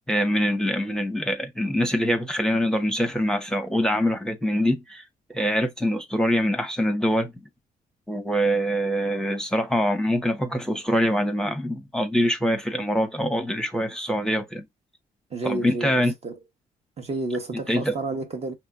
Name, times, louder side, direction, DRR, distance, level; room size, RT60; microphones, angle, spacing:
voice 1, 0.1-5.0 5.3-7.3 8.1-14.6 15.4-16.1 17.7-17.9, equal, 5° left, 0.8 m, -24 dB
voice 2, 15.3-16.4 17.0-18.5, right 3 dB, 40° right, 1.1 m, -31 dB
4.8 x 3.1 x 2.4 m
supercardioid pair, 65°, 16 cm